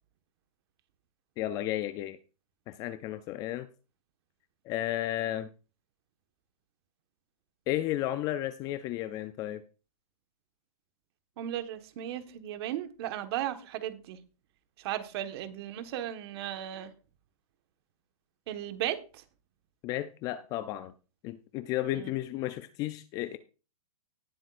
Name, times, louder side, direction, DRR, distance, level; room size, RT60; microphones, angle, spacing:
voice 1, 1.4-2.2 2.7-3.7 4.7-5.5 7.7-9.6 19.8-20.9 21.2-23.4, left 14 dB, 20° left, 13 dB, 0.4 m, -33 dB
voice 2, 11.4-14.2 14.8-16.9 18.5-19.2 21.9-22.1, right 12 dB, 40° right, 9 dB, 1.4 m, -36 dB
18.0 x 7.6 x 2.5 m, 0.33 s
hypercardioid pair, 150°, 19 cm